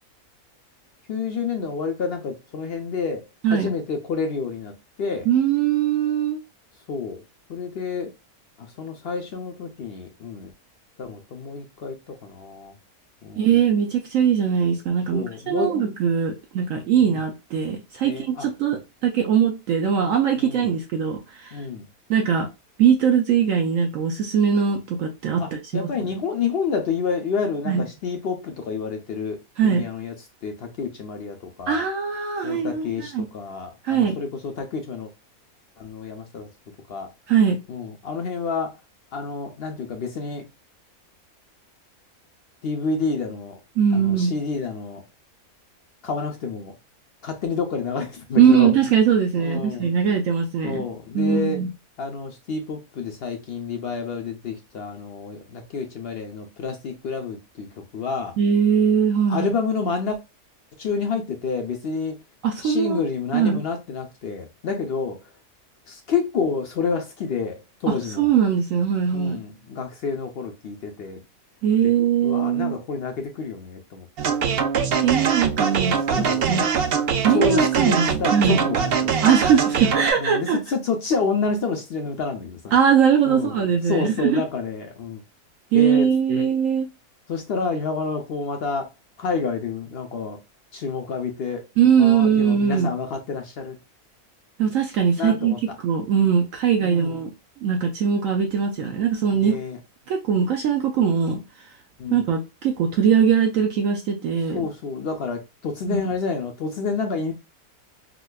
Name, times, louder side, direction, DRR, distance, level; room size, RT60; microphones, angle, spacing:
voice 1, 1.1-3.2 3.5-4.7 5.0-5.3 6.9-7.2 7.5-8.1 8.6-10.5 11.0-12.7 13.2-13.5 15.1-15.7 17.0-17.1 18.0-18.5 20.4-20.7 21.5-21.9 25.4-29.4 29.6-30.1 30.4-31.8 32.4-35.1 35.8-36.5 36.9-37.1 37.7-38.7 39.1-40.5 42.6-43.6 43.9-45.0 46.0-46.7 47.2-48.7 49.4-49.9 50.6-51.6 52.0-58.3 59.3-60.2 60.8-62.2 62.6-65.2 65.9-68.3 69.1-71.2 71.8-71.9 72.2-74.4 74.8-75.1 76.1-76.6 77.3-79.2 80.2-82.7 83.2-83.5 83.9-85.2 85.7-86.1 86.4-86.5 87.3-88.9 89.2-90.4 90.7-91.6 92.0-93.8 95.2-95.6 96.8-97.2 99.2-99.8 102.0-102.2 104.5-107.3, left 5 dB, 65° left, 0.6 m, -29 dB
voice 2, 5.3-6.4 13.4-21.6 22.1-22.5 22.8-26.1 27.7-27.9 29.6-29.9 31.7-33.3 33.8-34.2 37.3-37.6 43.8-44.4 48.4-50.9 51.1-51.7 58.4-59.5 62.4-63.0 63.3-63.6 67.9-69.4 71.6-72.8 75.0-76.7 77.2-78.6 79.2-80.6 82.7-84.4 85.7-86.9 91.8-92.9 94.6-95.6 95.8-97.3 97.6-99.6 100.1-101.4 102.1-104.6 105.9-106.0, right 7 dB, 70° right, 0.9 m, -21 dB
sound 1, 74.2-80.1, right 6 dB, 85° right, 0.5 m, -22 dB
4.8 x 2.2 x 2.2 m
omnidirectional pair, 1.6 m